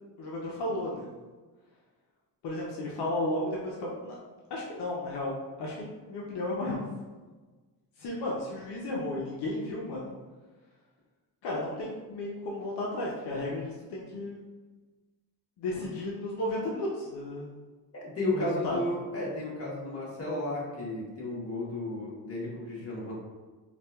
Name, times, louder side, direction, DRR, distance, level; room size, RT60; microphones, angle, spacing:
voice 1, 0.2-1.1 2.4-4.2 4.5-6.8 8.0-10.1 11.4-14.5 15.6-17.5 18.3-18.8, left 1 dB, 80° left, -3 dB, 0.7 m, -33 dB
voice 2, 17.9-23.1, left 2 dB, 35° left, -5 dB, 1.2 m, -33 dB
4.2 x 2.4 x 2.3 m, 1.3 s
cardioid pair, 100°, 40 cm